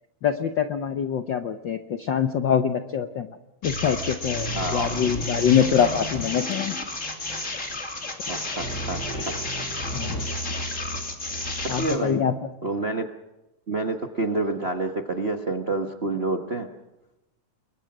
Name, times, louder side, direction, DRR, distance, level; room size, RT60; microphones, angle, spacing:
voice 1, 0.2-3.3 3.6-6.8 9.9-10.2 11.7-12.4, left 8 dB, 70° left, 8 dB, 1.1 m, -24 dB
sound 1, 3.6-12.0, left 1 dB, 25° left, 3.2 m, -31 dB
voice 2, 4.5-4.9 8.3-9.3 11.8-12.2 12.6-13.0 13.7-16.7, right 2 dB, 45° right, 4 dB, 0.8 m, -28 dB
29.5 x 22.0 x 6.1 m, 0.94 s
omnidirectional pair, 3.3 m